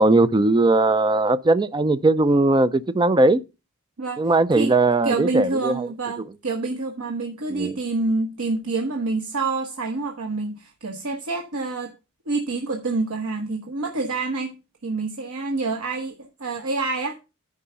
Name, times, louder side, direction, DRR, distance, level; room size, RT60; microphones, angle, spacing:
voice 1, 0.0-3.4 4.2-5.9 7.5-7.7, right 2 dB, 20° right, 0.4 m, -19 dB
voice 2, 4.0-4.7 5.0-11.9 12.3-14.6 14.8-17.2, right 3 dB, 85° right, 1.1 m, -27 dB
10.0 x 4.9 x 5.5 m
head